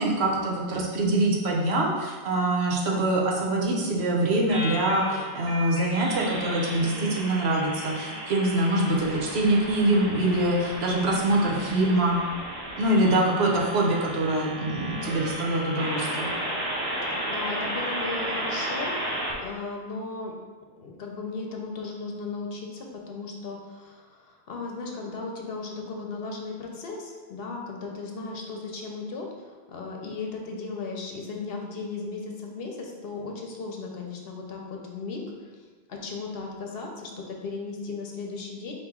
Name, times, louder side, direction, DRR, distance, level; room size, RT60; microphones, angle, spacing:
voice 1, 0.0-12.2 12.8-16.3, right 1 dB, 85° right, -1 dB, 1.0 m, -24 dB
sound 1, 4.5-19.3, right 1 dB, 30° right, 0.6 m, -34 dB
voice 2, 17.0-20.3 20.8-35.2 35.5-38.7, left 3 dB, 70° left, 0 dB, 0.9 m, -36 dB
4.4 x 3.0 x 3.6 m, 1.4 s
omnidirectional pair, 1.1 m